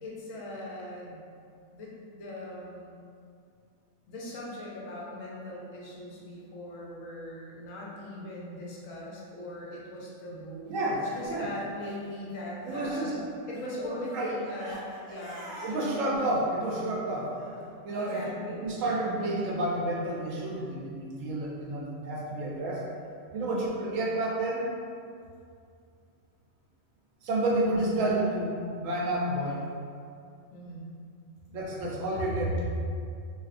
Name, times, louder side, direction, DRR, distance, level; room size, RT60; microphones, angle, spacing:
voice 1, 0.0-1.2 1.7-2.9 4.1-13.2 13.5-15.5 15.7-16.2 18.0-18.6 23.4-23.6 30.5-31.0, left 1 dB, 75° left, -5 dB, 1.0 m, -40 dB
Crying sobbing, 10.7-12.9 13.2-18.2, right 1 dB, 50° right, 0.6 m, -48 dB
voice 2, 10.7-11.5 12.7-13.2 13.9-14.3 15.6-17.3 17.8-22.9 23.3-24.7 27.2-29.7 31.5-32.5, right 1 dB, 75° right, -3 dB, 1.0 m, -30 dB
3.5 x 2.6 x 2.4 m, 2.4 s
omnidirectional pair, 1.4 m